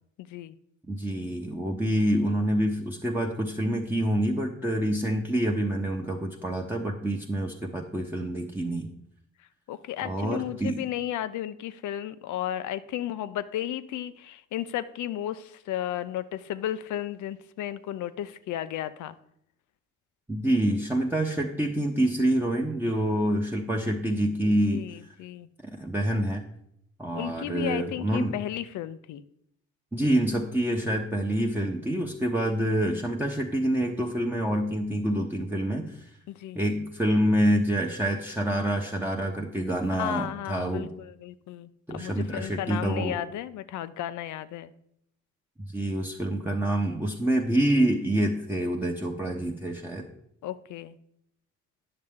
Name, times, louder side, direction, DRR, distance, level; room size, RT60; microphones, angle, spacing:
voice 1, 0.2-0.6 9.7-19.2 24.4-25.5 27.1-29.2 36.3-36.6 39.9-44.7 50.4-51.0, left 12 dB, 75° left, 15 dB, 0.6 m, -34 dB
voice 2, 0.9-8.9 10.0-10.8 20.3-24.8 25.8-26.4 27.0-28.4 29.9-36.1 36.5-40.9 41.9-43.1 45.7-50.1, right 1 dB, 5° right, -1 dB, 0.9 m, -27 dB
9.8 x 6.5 x 3.6 m, 0.73 s
cardioid pair, 90°, 30 cm